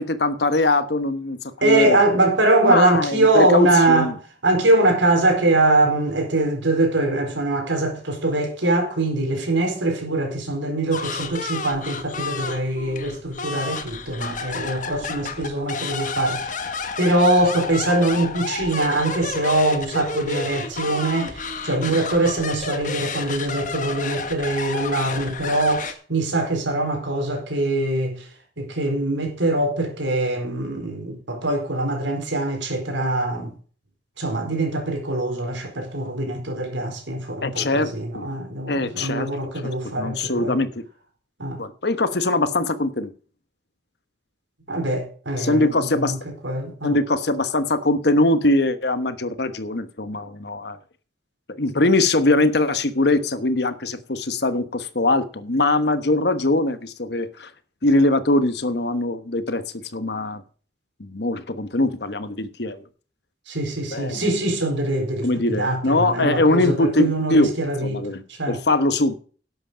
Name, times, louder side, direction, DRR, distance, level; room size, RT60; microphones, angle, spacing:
voice 1, 0.0-2.0 2.6-4.1 37.4-38.3 38.7-39.3 39.8-40.8 41.6-43.1 45.4-46.2 46.8-50.8 51.5-57.5 57.8-59.6 59.9-60.4 61.0-62.8 63.9-64.2 65.2-67.5 67.8-69.1, left 2 dB, 60° left, 1.1 m, -22 dB
voice 2, 1.6-4.1 4.4-16.5 17.0-28.2 28.6-33.5 34.2-40.6 41.4-41.6 44.7-46.2 46.4-47.0 63.5-68.6, right 2 dB, 85° right, 4.3 m, -22 dB
sound 1, 10.9-25.9, left 4 dB, 45° left, 1.3 m, -31 dB
11.5 x 7.9 x 5.0 m
head